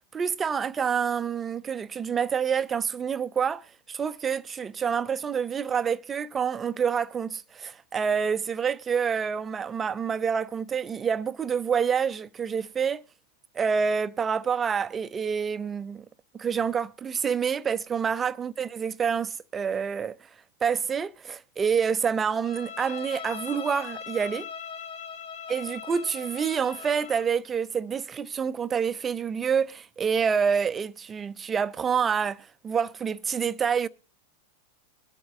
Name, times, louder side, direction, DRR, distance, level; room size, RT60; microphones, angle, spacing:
voice 1, 0.1-13.0 13.5-16.1 16.3-20.2 20.6-24.5 25.5-33.9, right 6 dB, 20° right, 0.6 m, -27 dB
Bowed string instrument, 22.4-27.3, left 7 dB, 55° left, 1.5 m, -40 dB
23.5 x 8.7 x 3.4 m
figure-of-eight pair, 90°, 0 cm